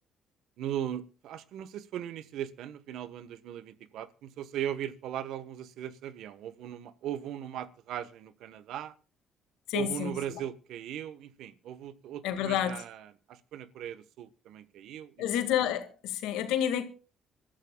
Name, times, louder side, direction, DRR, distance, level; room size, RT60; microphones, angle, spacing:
voice 1, 0.6-8.9 9.7-15.1, right 10 dB, 75° right, 1.1 m, -38 dB
voice 2, 9.7-10.4 12.2-12.8 15.2-16.8, left 10 dB, 85° left, 1.9 m, -30 dB
26.0 x 13.0 x 2.3 m
supercardioid pair, 80°, 0 cm